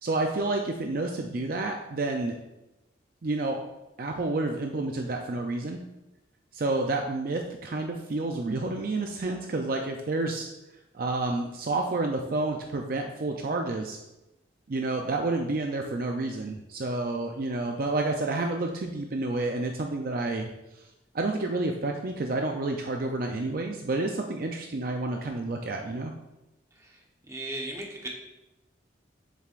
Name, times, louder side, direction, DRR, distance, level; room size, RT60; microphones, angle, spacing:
voice 1, 0.0-2.4 3.2-3.6 4.0-5.8 6.5-10.5 10.9-14.0 14.7-20.5 20.8-20.9 21.1-26.1, right 2 dB, 50° right, 3 dB, 0.5 m, -29 dB
voice 2, 26.8-28.1, right 1 dB, 15° right, -1 dB, 1.0 m, -37 dB
7.4 x 7.0 x 2.5 m, 0.97 s
head